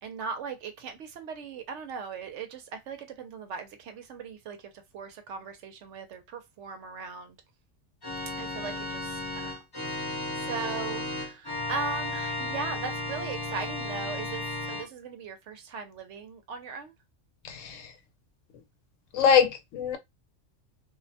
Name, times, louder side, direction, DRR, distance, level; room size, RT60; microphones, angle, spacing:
voice 1, 0.0-7.4 8.4-9.6 9.9-16.9, right 5 dB, 75° right, 0.9 m, -39 dB
Organ, 8.0-14.9, left 2 dB, 25° left, 0.7 m, -34 dB
voice 2, 17.4-17.9 19.1-20.0, left 7 dB, 85° left, 0.9 m, -23 dB
2.4 x 2.1 x 2.6 m
omnidirectional pair, 1.3 m